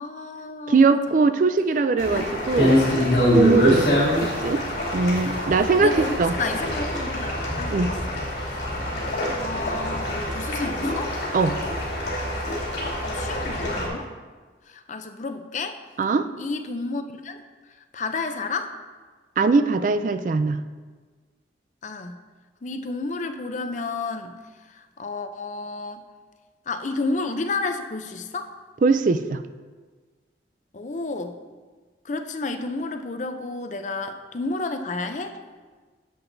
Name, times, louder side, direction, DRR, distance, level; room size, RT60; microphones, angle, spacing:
voice 1, 0.0-1.3 2.1-2.2 2.5-2.6 5.8-7.3 7.6-8.2 8.5-8.7 9.3-11.1 13.0-14.1 14.7-15.8 16.4-17.4 17.9-18.7 21.8-22.2 22.6-24.3 24.7-26.0 26.7-28.5 30.7-31.4 32.0-35.4, left 3 dB, 40° left, 7 dB, 0.5 m, -31 dB
voice 2, 0.7-2.8 3.3-3.9 4.2-4.6 4.9-6.3 7.7-7.9 11.3-11.6 16.0-16.3 19.4-20.6 28.8-29.4, right 4 dB, 45° right, 10 dB, 0.3 m, -20 dB
sound 1, 2.0-13.9, left 1 dB, 70° left, 2.6 m, -25 dB
10.0 x 7.8 x 2.6 m, 1.4 s
head